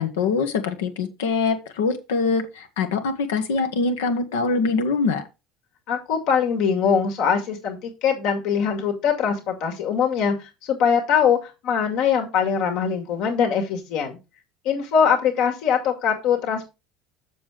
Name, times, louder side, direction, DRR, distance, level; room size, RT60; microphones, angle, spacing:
voice 1, 0.0-5.2, left 4 dB, 85° left, 7 dB, 1.5 m, -23 dB
voice 2, 5.9-14.2 14.6-16.6, left 7 dB, 70° left, 2 dB, 2.3 m, -22 dB
7.2 x 6.2 x 4.9 m, 0.27 s
hypercardioid pair, 85°, 0 cm